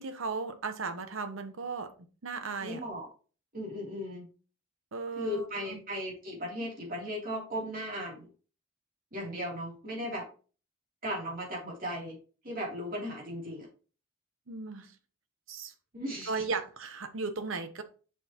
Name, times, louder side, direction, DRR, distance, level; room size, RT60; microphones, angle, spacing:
voice 1, 0.0-1.9 2.2-2.8 4.9-5.8 14.5-14.9 15.5-15.7 16.3-17.8, right 4 dB, 75° right, 0.9 m, -36 dB
voice 2, 2.6-3.1 3.5-4.3 5.2-8.3 9.1-10.3 11.0-12.2 12.4-13.7 15.9-16.4, equal, 45° right, 3.0 m, -36 dB
6.7 x 6.1 x 3.0 m
head